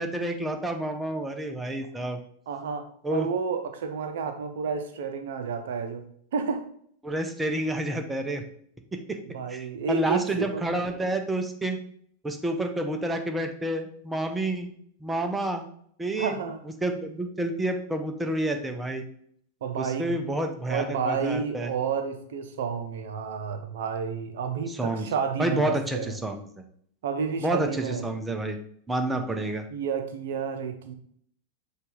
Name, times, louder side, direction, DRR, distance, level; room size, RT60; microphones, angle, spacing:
voice 1, 0.0-2.2 3.0-3.3 7.0-8.4 8.9-9.2 9.5-11.8 12.2-14.7 15.0-15.6 16.0-16.4 16.8-19.0 19.8-21.7 24.7-25.1 25.4-26.5 27.4-28.6 28.9-29.6, right 1 dB, 10° right, 5 dB, 0.5 m, -29 dB
voice 2, 2.5-6.0 6.3-6.6 9.3-10.6 16.2-16.6 19.6-20.2 20.7-26.1 27.0-28.1 29.7-30.9, right 6 dB, 60° right, 7 dB, 0.5 m, -30 dB
6.7 x 2.4 x 3.1 m, 0.63 s
figure-of-eight pair, 90°, 0 cm